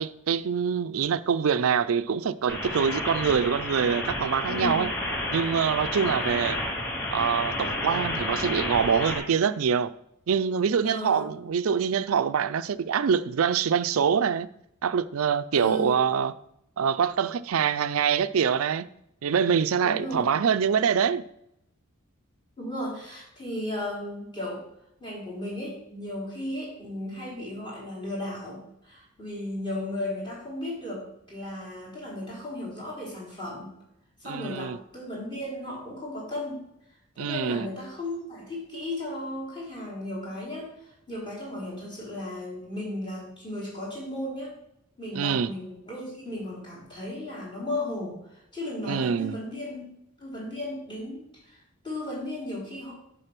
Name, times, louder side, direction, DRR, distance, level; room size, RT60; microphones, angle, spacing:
voice 1, 0.0-4.9 5.3-6.6 7.1-9.9 10.3-14.5 14.8-16.3 16.8-18.9 19.2-21.2 34.2-34.8 37.2-37.7 45.1-45.5 48.9-49.4, right 7 dB, 75° right, 0.4 m, -25 dB
sound 1, 2.5-9.2, left 1 dB, 50° left, 2.9 m, -31 dB
voice 2, 4.4-4.9 6.1-6.4 10.8-11.3 15.5-16.0 19.8-20.4 22.6-24.6 25.0-33.7 34.2-36.6 37.2-44.5 45.0-49.8 50.2-51.6 51.8-52.9, left 1 dB, 25° left, 3.6 m, -35 dB
9.9 x 3.8 x 5.9 m
head